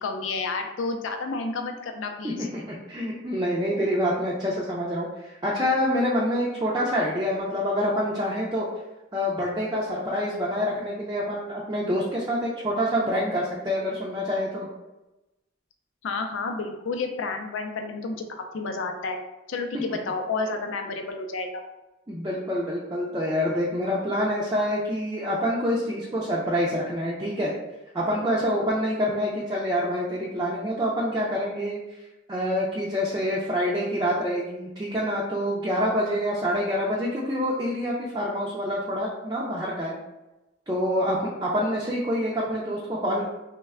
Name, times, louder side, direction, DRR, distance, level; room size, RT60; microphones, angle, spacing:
voice 1, 0.0-2.5 16.0-18.3 18.5-19.2 19.5-21.6, left 3 dB, 70° left, 4 dB, 0.4 m, -30 dB
voice 2, 2.2-8.7 9.1-14.7 19.7-19.8 22.1-27.5 27.9-31.8 32.3-40.0 40.7-43.3, equal, 20° right, -6 dB, 0.4 m, -26 dB
3.1 x 2.1 x 3.5 m, 1.0 s
head